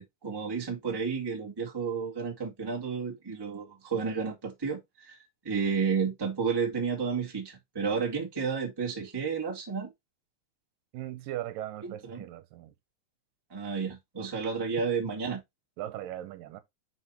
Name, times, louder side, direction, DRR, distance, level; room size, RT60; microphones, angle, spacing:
voice 1, 0.0-5.2 5.4-9.9 11.8-12.2 13.5-15.4, right 5 dB, 10° right, 1.5 m, -31 dB
voice 2, 10.9-12.7 15.8-16.6, right 13 dB, 85° right, 2.5 m, -38 dB
6.3 x 5.7 x 3.0 m
omnidirectional pair, 3.9 m